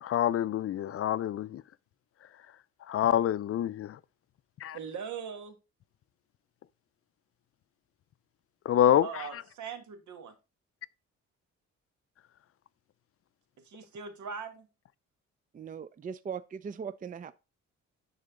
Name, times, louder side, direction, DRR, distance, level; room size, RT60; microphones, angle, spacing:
voice 1, 0.0-1.6 2.9-4.0 4.6-4.8 8.7-9.1, left 11 dB, 50° left, 0.5 m, -26 dB
voice 2, 4.7-5.6 9.0-10.3 13.6-14.7, right 6 dB, 70° right, 1.7 m, -40 dB
voice 3, 15.5-17.3, right 6 dB, 30° right, 0.4 m, -39 dB
10.5 x 4.0 x 3.7 m
cardioid pair, 90°, 30 cm